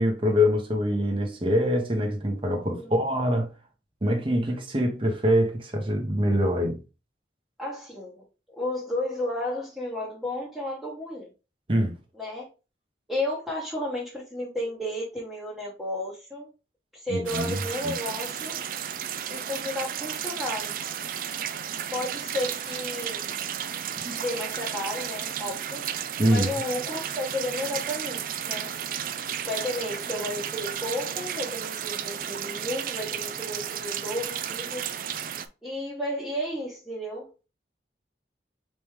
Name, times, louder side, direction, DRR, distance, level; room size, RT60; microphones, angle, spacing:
voice 1, 0.0-3.5 4.0-6.8 11.7-11.9 17.1-17.6 17.8-17.9 24.0-24.2 26.2-26.5, equal, 30° right, 0.9 m, -24 dB
voice 2, 2.7-3.0 7.6-8.2 8.5-11.3 12.2-12.5 13.1-16.5 16.9-18.5 19.3-21.0 21.9-23.2 24.1-25.8 26.3-28.8 29.5-34.9 35.6-37.5, left 1 dB, ahead, 1.0 m, -33 dB
sound 1, 17.3-35.5, right 9 dB, 50° right, 0.4 m, -33 dB
4.2 x 3.2 x 3.5 m
head